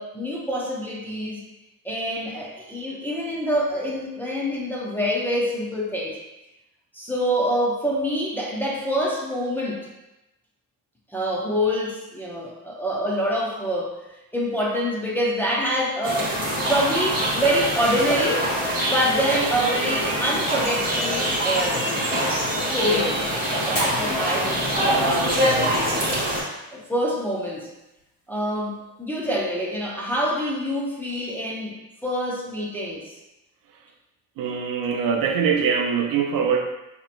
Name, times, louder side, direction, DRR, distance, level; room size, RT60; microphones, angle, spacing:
voice 1, 0.0-1.4 1.8-6.2 6.9-9.8 11.1-13.9 14.3-16.4 16.7-18.5 18.8-21.8 22.6-26.0 26.7-27.7 28.3-31.8 32.0-33.1 34.7-34.8, equal, 5° left, -5 dB, 0.5 m, -26 dB
sound 1, 16.0-26.4, right 1 dB, 25° right, 1.1 m, -24 dB
Fire, 23.6-31.6, equal, 20° left, 1.4 m, -41 dB
voice 2, 34.4-36.7, right 6 dB, 70° right, 3 dB, 0.5 m, -23 dB
4.4 x 2.8 x 2.5 m, 0.97 s
cardioid pair, 155°, 35 cm